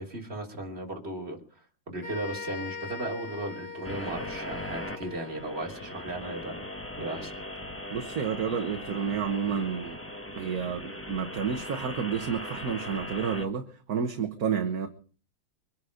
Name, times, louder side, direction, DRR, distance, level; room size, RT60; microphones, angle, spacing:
voice 1, 0.0-1.4 1.9-6.7 7.0-7.3, right 1 dB, 30° right, 3.5 m, -36 dB
sound 1, 2.0-5.7, left 5 dB, 60° left, 4.0 m, -41 dB
sound 2, 3.8-13.4, left 1 dB, 10° left, 1.1 m, -39 dB
voice 2, 7.9-10.0 10.3-14.9, right 7 dB, 50° right, 1.5 m, -30 dB
24.0 x 10.5 x 5.1 m
omnidirectional pair, 2.3 m